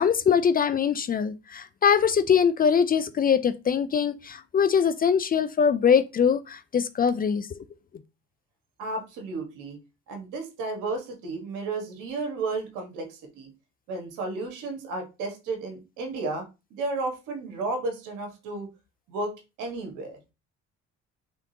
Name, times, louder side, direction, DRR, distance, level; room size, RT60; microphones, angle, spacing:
voice 1, 0.0-7.6, left 7 dB, 30° left, 0.4 m, -22 dB
voice 2, 8.8-9.8 10.1-13.5 13.9-16.4 16.7-18.7 19.1-19.3 19.6-20.2, right 3 dB, 80° right, 1.4 m, -33 dB
3.6 x 3.6 x 2.8 m
supercardioid pair, 75°, 31 cm